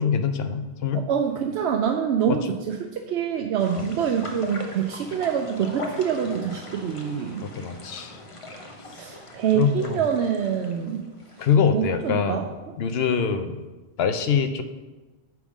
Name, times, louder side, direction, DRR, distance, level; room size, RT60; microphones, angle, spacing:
voice 1, 0.0-1.0 2.3-2.4 3.8-3.9 7.4-8.2 9.5-10.0 11.4-12.4 12.8-13.6 14.0-14.6, left 6 dB, 70° left, 9 dB, 0.9 m, -24 dB
voice 2, 0.9-7.5 8.9-11.1 11.7-12.4, right 8 dB, 85° right, 4 dB, 0.9 m, -26 dB
sound 1, 3.6-11.8 12.1-12.2, left 2 dB, 35° left, 0.8 m, -40 dB
9.2 x 3.7 x 6.1 m, 1.2 s
omnidirectional pair, 1.1 m